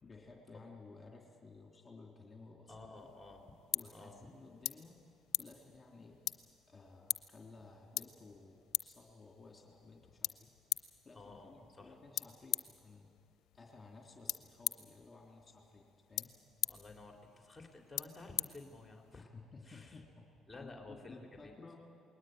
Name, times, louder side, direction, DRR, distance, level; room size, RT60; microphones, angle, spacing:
voice 1, 0.0-3.1 3.7-5.0 5.4-6.2 6.7-10.5 11.0-13.1 13.5-16.3 19.2-20.3 20.5-21.8, left 3 dB, 30° left, 1 dB, 3.5 m, -56 dB
voice 2, 2.7-3.5 3.9-4.3 11.1-12.0 16.7-19.3 19.7-20.0 20.5-21.8, left 2 dB, 10° left, 2 dB, 3.6 m, -53 dB
sound 1, 3.0-19.2, left 13 dB, 70° left, 0.7 m, -43 dB
21.0 x 19.0 x 9.2 m, 2.4 s
hypercardioid pair, 65°, 0 cm